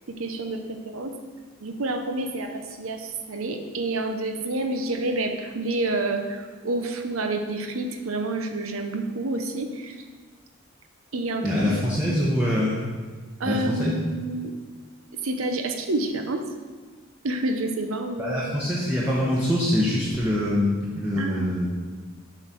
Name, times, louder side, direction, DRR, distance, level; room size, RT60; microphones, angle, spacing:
voice 1, 0.1-1.2 1.6-10.0 11.1-12.2 13.4-14.5 15.2-16.4 17.2-18.5 21.2-21.5, right 2 dB, 85° right, 5 dB, 0.8 m, -29 dB
voice 2, 11.4-12.8 13.5-13.9 18.2-21.7, left 1 dB, 5° right, -6 dB, 0.9 m, -24 dB
8.0 x 4.0 x 6.0 m, 1.4 s
head